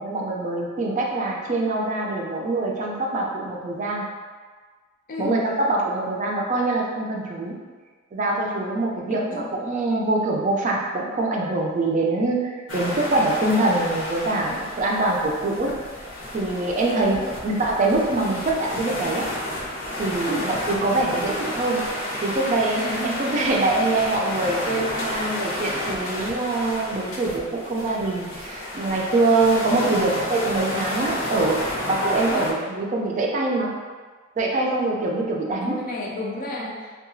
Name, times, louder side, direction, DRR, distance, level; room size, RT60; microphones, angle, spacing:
voice 1, 0.0-4.1 5.2-7.6 8.1-15.7 16.3-19.3 20.0-21.8 22.2-33.7 34.4-35.8, right 2 dB, 40° right, -2 dB, 0.4 m, -24 dB
voice 2, 9.1-9.6 16.9-17.4 20.2-20.5 22.6-23.5 32.3-32.4 33.0-33.1 35.6-36.9, left 2 dB, 45° left, -2 dB, 0.5 m, -33 dB
sound 1, 12.7-32.5, left 1 dB, 85° left, 0.8 m, -31 dB
2.8 x 2.3 x 2.5 m, 1.5 s
head